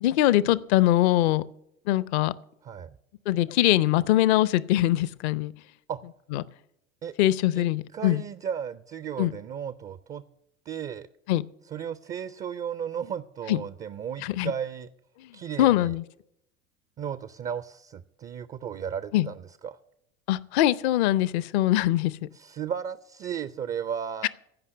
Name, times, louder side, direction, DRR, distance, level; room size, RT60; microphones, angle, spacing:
voice 1, 0.0-1.4 1.9-2.3 3.3-5.5 6.3-6.4 7.2-8.2 9.2-9.3 11.3-11.4 13.5-13.6 14.2-14.5 15.2-15.3 15.6-16.0 19.1-19.3 20.3-22.2 24.2-24.3, left 14 dB, 55° left, 20 dB, 0.7 m, -22 dB
voice 2, 2.6-3.0 5.9-6.0 7.0-7.1 7.5-10.2 10.7-11.1 11.7-14.9 15.3-15.9 17.0-19.8 22.3-24.3, right 8 dB, 20° right, 16 dB, 0.4 m, -35 dB
15.5 x 5.5 x 9.9 m, 0.78 s
figure-of-eight pair, 75°, 39 cm